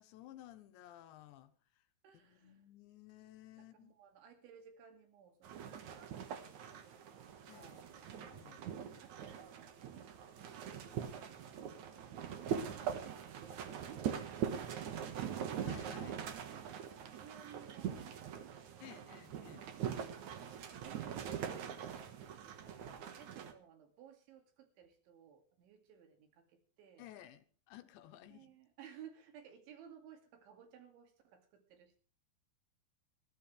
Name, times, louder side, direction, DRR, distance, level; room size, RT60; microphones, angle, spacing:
voice 1, 0.0-1.8 2.1-3.9 7.5-8.6 15.6-16.2 18.8-19.7 27.0-28.6, left 13 dB, 75° left, 3.2 m, -56 dB
voice 2, 2.0-2.6 3.6-7.9 9.0-9.7 10.1-13.4 16.8-19.0 20.2-27.1 28.3-32.0, right 8 dB, 80° right, 4.7 m, -59 dB
sound 1, 5.4-23.5, right 8 dB, 60° right, 2.0 m, -43 dB
20.5 x 15.0 x 3.4 m
omnidirectional pair, 5.3 m